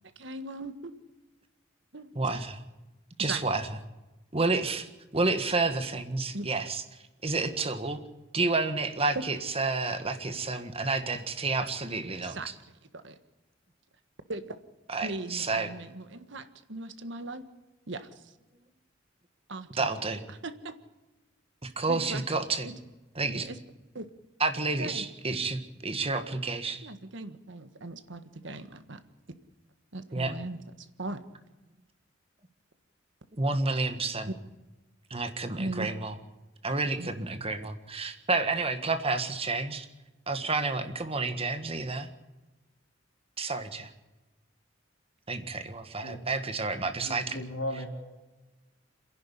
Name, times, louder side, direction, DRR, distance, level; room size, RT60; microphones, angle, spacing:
voice 1, 0.2-0.9 1.9-2.1 3.2-3.4 6.3-6.5 9.1-9.2 12.2-12.5 12.9-13.2 14.3-14.5 15.0-17.4 17.9-18.3 19.5-19.9 20.3-20.7 21.9-22.2 22.6-22.7 23.5-23.6 23.9-24.1 24.8-25.1 26.8-29.0 29.9-31.2 35.6-35.9 37.0-37.1, right 2 dB, 65° right, 10 dB, 1.6 m, -38 dB
voice 2, 2.1-2.6 3.2-3.7 4.3-4.9 5.1-6.8 7.2-8.0 8.3-12.4 14.9-15.7 19.8-20.2 21.8-22.7 23.2-23.5 24.4-26.8 30.1-30.3 33.4-34.3 35.1-36.1 36.6-39.9 40.3-42.1 43.4-43.9 45.3-47.4, right 3 dB, 30° right, 8 dB, 1.6 m, -30 dB
voice 3, 47.0-47.9, left 1 dB, 90° left, 2 dB, 4.1 m, -36 dB
26.5 x 11.0 x 9.9 m, 1.1 s
head